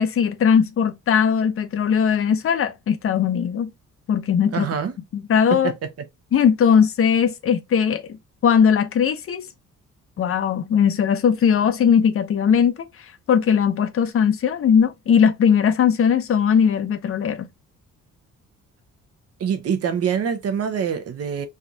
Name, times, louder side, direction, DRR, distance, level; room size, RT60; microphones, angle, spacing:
voice 1, 0.0-3.7 4.1-4.7 5.1-5.7 6.3-9.5 10.2-12.9 13.3-17.5, left 7 dB, 50° left, 0.6 m, -19 dB
voice 2, 4.5-4.9 19.4-21.5, right 7 dB, 55° right, 0.8 m, -24 dB
3.4 x 2.4 x 2.7 m
cardioid pair, 90°, 30 cm